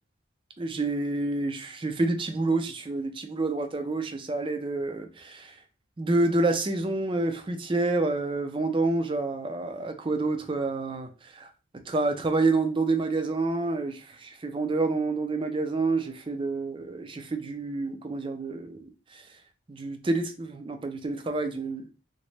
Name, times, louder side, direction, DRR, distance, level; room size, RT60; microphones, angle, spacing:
voice 1, 0.6-5.6 6.0-11.5 11.9-19.3 19.7-21.9, right 2 dB, 25° right, 0.4 m, -28 dB
3.9 x 2.2 x 3.2 m
head